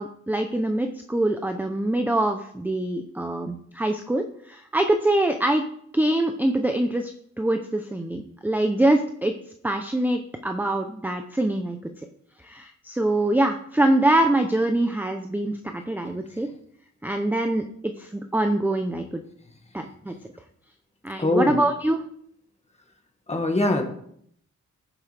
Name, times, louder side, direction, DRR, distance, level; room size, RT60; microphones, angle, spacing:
voice 1, 0.0-5.6 5.9-7.1 7.4-9.3 9.6-11.8 12.4-16.5 17.0-19.2 19.7-20.1 21.0-22.0, right 1 dB, 5° right, 5 dB, 0.6 m, -24 dB
voice 2, 21.2-21.6 23.3-23.8, left 2 dB, 20° left, 3 dB, 1.8 m, -22 dB
15.0 x 7.4 x 3.4 m, 0.67 s
wide cardioid pair, 120°, 30 cm